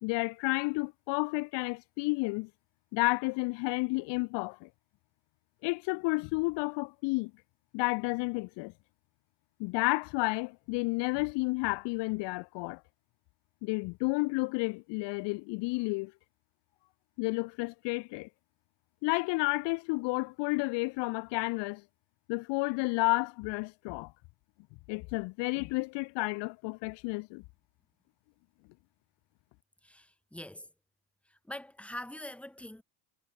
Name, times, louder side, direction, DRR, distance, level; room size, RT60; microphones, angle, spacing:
voice 1, 0.0-2.5 2.9-4.7 5.6-7.3 7.7-8.7 9.6-12.8 13.6-16.1 17.2-18.3 19.0-21.8 22.3-24.1 24.9-27.4, left 27 dB, 60° left, 2.6 m, -31 dB
voice 2, 29.8-30.7 31.3-32.8, left 1 dB, 5° left, 4.2 m, -44 dB
supercardioid pair, 130°, 48 cm